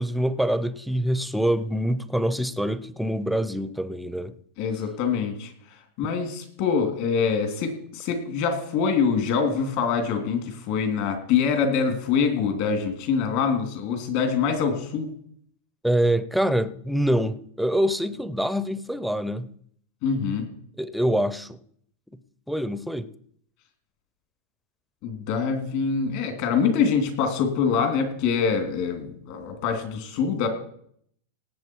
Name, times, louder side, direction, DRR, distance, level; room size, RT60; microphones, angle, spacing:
voice 1, 0.0-4.4 15.8-19.5 20.8-21.6 22.5-23.1, equal, ahead, 0.6 m, -25 dB
voice 2, 4.6-15.1 20.0-20.5 25.0-30.5, left 6 dB, 55° left, 2.9 m, -25 dB
18.5 x 7.8 x 4.7 m
supercardioid pair, 140°, 0 cm